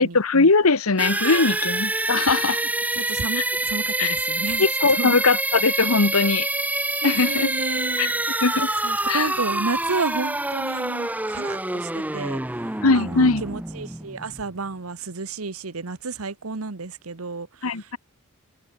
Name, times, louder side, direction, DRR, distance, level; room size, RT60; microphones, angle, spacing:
voice 1, 0.0-2.6 3.3-3.4 4.0-4.2 4.6-6.5 7.0-7.5 8.0-8.1 8.4-8.7 9.1-9.3 12.8-13.4 17.6-18.0, left 4 dB, 75° left, 1.2 m, -20 dB
sound 1, 1.0-14.7, right 2 dB, 5° right, 0.8 m, -26 dB
voice 2, 1.2-1.6 2.9-4.7 5.0-5.1 7.0-8.1 8.8-12.4 12.9-17.5, right 3 dB, 75° right, 1.2 m, -31 dB
open air
head